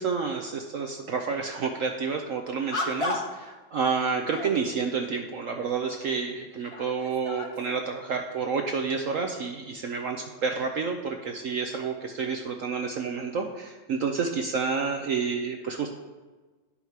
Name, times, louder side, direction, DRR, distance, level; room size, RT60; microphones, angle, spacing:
voice 1, 0.0-15.9, right 5 dB, 65° right, 3 dB, 0.8 m, -29 dB
sound 1, 1.7-1.9 2.7-3.5 4.0-4.6 5.6-5.7 6.3-7.9, left 2 dB, 50° left, 0.4 m, -35 dB
11.0 x 5.6 x 4.6 m, 1.3 s
omnidirectional pair, 1.9 m